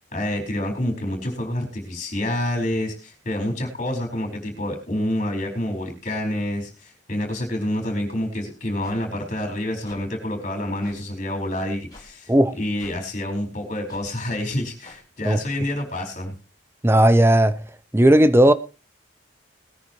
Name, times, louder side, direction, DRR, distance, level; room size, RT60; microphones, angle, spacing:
voice 1, 0.1-12.3 12.6-16.3, left 1 dB, 35° left, 4.6 m, -28 dB
sound 1, 8.8-9.0 9.8-10.0 10.8-11.0 11.9-12.1 12.8-13.0 13.9-14.0 14.8-15.0, left 2 dB, 20° left, 4.7 m, -45 dB
voice 2, 16.8-17.6 17.9-18.5, right 1 dB, 10° right, 0.7 m, -15 dB
20.5 x 10.0 x 3.1 m
head